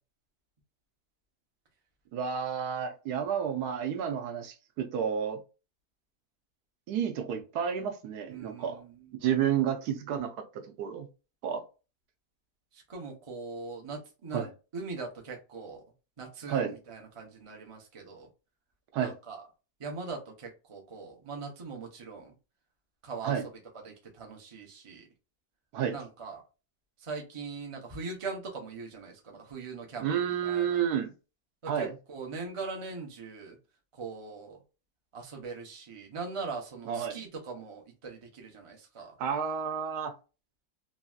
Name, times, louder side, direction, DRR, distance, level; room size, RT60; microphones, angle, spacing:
voice 1, 2.1-5.4 6.9-8.8 9.2-11.1 11.4-11.6 14.3-14.5 16.5-16.8 18.9-19.1 23.2-23.5 25.7-26.0 30.0-31.1 31.7-31.9 36.8-37.2 39.2-40.1, right 8 dB, 80° right, 1.1 m, -31 dB
voice 2, 8.3-9.0 12.7-14.5 14.7-15.8 16.2-18.3 19.0-19.4 19.8-22.3 23.0-23.3 23.8-25.0 25.9-26.4 27.0-30.1 30.4-30.8 31.6-33.6 34.0-34.6 35.1-39.1, right 4 dB, 35° right, 0.5 m, -41 dB
3.1 x 2.6 x 2.3 m
omnidirectional pair, 1.7 m